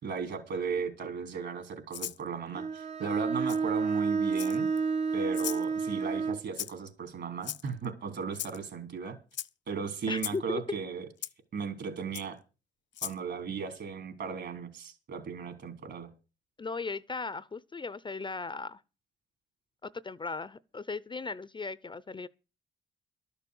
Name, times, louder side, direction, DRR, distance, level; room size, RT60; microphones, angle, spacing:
voice 1, 0.0-4.7 5.1-9.2 9.7-11.1 11.5-12.4 13.0-16.1, right 5 dB, 60° right, 3.5 m, -36 dB
Rattle (instrument), 1.9-2.2 3.5-3.6 4.3-4.8 5.3-5.6 6.5-6.9 7.4-7.9 8.3-8.6 9.3-9.5 10.2-10.4 11.2-11.3 12.1-12.2 12.9-13.2, left 12 dB, 65° left, 0.6 m, -37 dB
Bowed string instrument, 2.5-6.5, right 5 dB, 35° right, 0.7 m, -30 dB
voice 2, 10.1-10.6 16.6-18.8 19.8-22.3, left 4 dB, 25° left, 0.6 m, -37 dB
12.5 x 6.9 x 8.1 m
cardioid pair, 90°, 20 cm